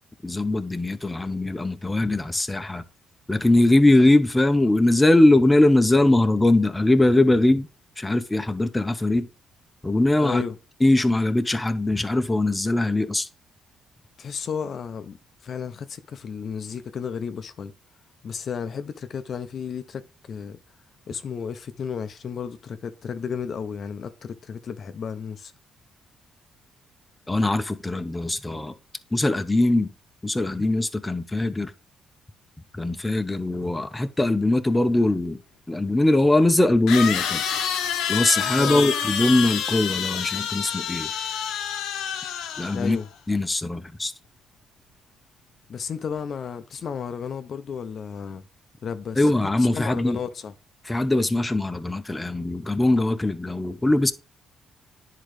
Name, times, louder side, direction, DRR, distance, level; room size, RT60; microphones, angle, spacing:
voice 1, 0.2-2.8 3.3-7.7 8.0-9.3 9.8-10.4 10.8-13.3 27.3-28.7 29.1-29.9 30.2-31.7 32.8-35.4 35.7-37.4 38.1-41.1 42.6-43.0 43.3-44.1 49.2-50.2 50.8-54.1, left 2 dB, 15° left, 0.7 m, -21 dB
voice 2, 10.2-10.6 14.2-15.2 15.4-17.7 18.2-20.6 21.1-25.5 38.6-38.9 42.7-43.1 45.7-48.4 48.8-50.5, left 7 dB, 55° left, 0.6 m, -33 dB
sound 1, 35.3-35.4 36.9-43.0, left 8 dB, 90° left, 0.9 m, -27 dB
10.0 x 3.8 x 3.2 m
cardioid pair, 90°, 0 cm